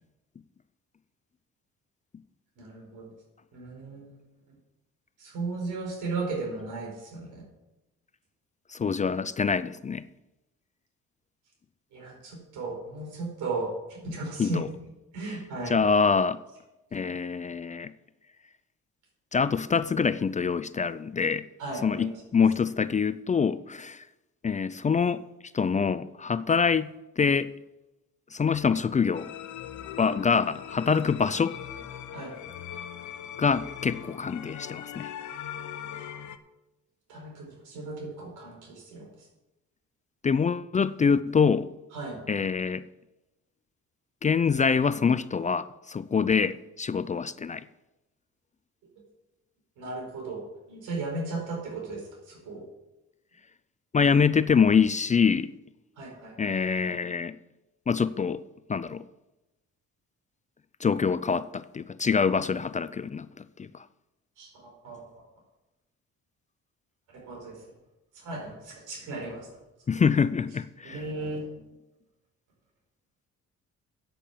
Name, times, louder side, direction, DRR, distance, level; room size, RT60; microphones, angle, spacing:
voice 1, 2.6-3.1 3.5-4.2 5.2-7.4 11.9-14.7 15.1-15.8 21.6-22.1 32.1-32.3 37.1-39.1 41.9-42.2 49.8-50.4 50.7-52.6 56.0-56.5 64.4-65.0 67.1-67.6 68.1-69.5 70.8-71.4, right 3 dB, 85° right, 4.7 m, -36 dB
voice 2, 8.7-10.0 14.4-14.7 15.7-16.4 16.9-17.9 19.3-21.4 21.8-24.0 24.4-25.2 25.5-26.9 27.2-27.5 28.3-29.3 30.0-31.5 33.4-35.1 40.2-41.7 42.3-42.8 44.2-47.6 53.9-55.5 56.4-57.4 57.9-58.4 58.7-59.0 60.8-63.3 63.6-63.7 69.9-71.0, left 6 dB, 25° left, 0.4 m, -25 dB
sound 1, 29.1-36.4, left 9 dB, 70° left, 0.9 m, -40 dB
8.7 x 8.3 x 7.4 m
cardioid pair, 90°, 30 cm